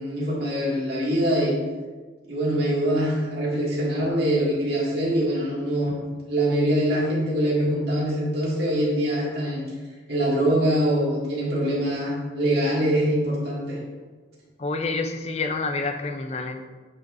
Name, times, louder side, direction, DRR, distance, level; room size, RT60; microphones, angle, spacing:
voice 1, 0.0-1.6 2.3-5.9 6.3-9.7 10.1-13.8, right 1 dB, 60° right, -5 dB, 2.0 m, -23 dB
voice 2, 14.6-16.7, left 3 dB, 35° left, 6 dB, 0.4 m, -28 dB
7.9 x 5.8 x 2.6 m, 1.4 s
head